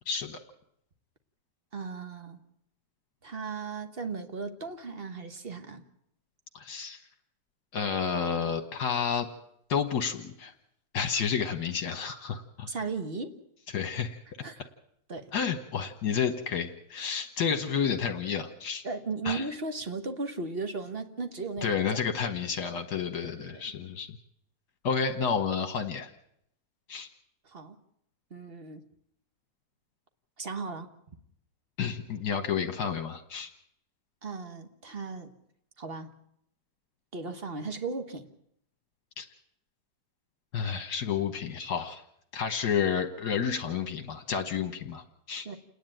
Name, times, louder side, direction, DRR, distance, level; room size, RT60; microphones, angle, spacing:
voice 1, 0.1-0.4 6.5-7.0 7.7-9.3 9.7-10.5 10.9-12.7 13.7-14.2 15.3-18.8 19.2-19.4 21.6-24.1 24.8-26.1 26.9-27.1 31.8-33.5 39.2-39.3 40.5-42.0 42.3-45.5, left 6 dB, 70° left, 7 dB, 1.6 m, -30 dB
voice 2, 1.7-2.4 3.2-5.8 12.7-13.4 14.4-14.6 15.1-15.3 18.8-21.7 23.2-23.6 27.4-27.8 28.3-28.8 30.4-30.9 34.2-35.3 35.8-36.1 37.1-38.3 45.4-45.6, right 4 dB, 35° right, 7 dB, 1.5 m, -36 dB
28.5 x 10.0 x 8.9 m, 0.73 s
omnidirectional pair, 1.8 m